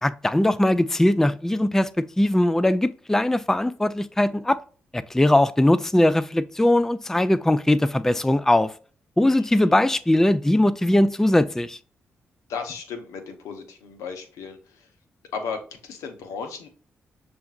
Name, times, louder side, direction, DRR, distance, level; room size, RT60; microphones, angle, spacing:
voice 1, 0.0-4.6 4.9-8.7 9.2-11.8, left 1 dB, 10° left, 0.3 m, -20 dB
voice 2, 9.3-9.7 12.5-14.9 15.3-16.7, left 5 dB, 80° left, 0.9 m, -35 dB
6.8 x 2.6 x 2.5 m
supercardioid pair, 45°, 5 cm